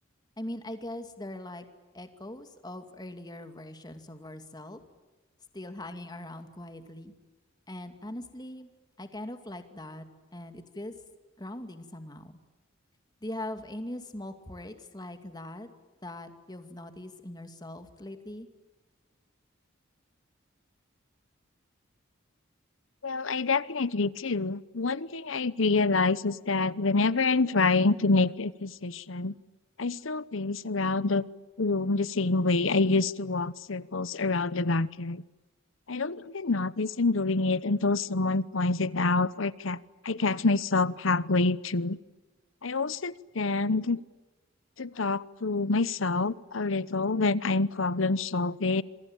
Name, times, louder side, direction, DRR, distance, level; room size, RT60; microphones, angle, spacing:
voice 1, 0.4-1.6 1.9-4.8 5.5-7.1 7.7-8.7 9.0-10.0 10.3-10.9 11.4-12.4 13.2-15.7 16.0-18.5, left 1 dB, 20° left, 8 dB, 2.4 m, -41 dB
voice 2, 23.0-29.3 29.8-31.2 31.6-35.2 35.9-42.0 42.6-44.0 44.8-48.8, left 3 dB, 75° left, 18 dB, 1.0 m, -27 dB
27.0 x 23.5 x 8.9 m, 1.2 s
head